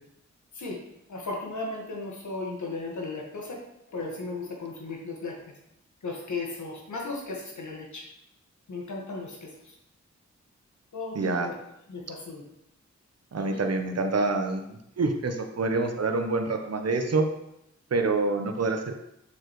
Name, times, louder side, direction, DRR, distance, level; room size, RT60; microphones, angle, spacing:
voice 1, 1.1-3.6 3.9-5.4 6.0-8.1 8.7-9.8 10.9-11.6 11.9-12.4 13.3-13.6, left 3 dB, 80° left, 0 dB, 1.7 m, -36 dB
voice 2, 11.1-11.5 13.3-17.3 17.9-18.9, right 3 dB, 60° right, 5 dB, 1.0 m, -26 dB
7.2 x 6.7 x 3.2 m, 0.81 s
cardioid pair, 45°, 29 cm